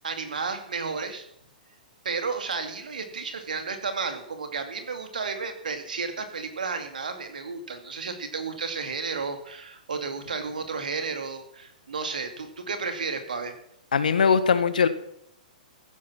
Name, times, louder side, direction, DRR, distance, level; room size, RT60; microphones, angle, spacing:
voice 1, 0.0-1.3 2.0-13.5, right 4 dB, 70° right, 7 dB, 2.6 m, -32 dB
voice 2, 13.9-14.9, left 6 dB, 65° left, 12 dB, 1.5 m, -20 dB
14.5 x 11.0 x 6.0 m, 0.71 s
figure-of-eight pair, 110°, 5 cm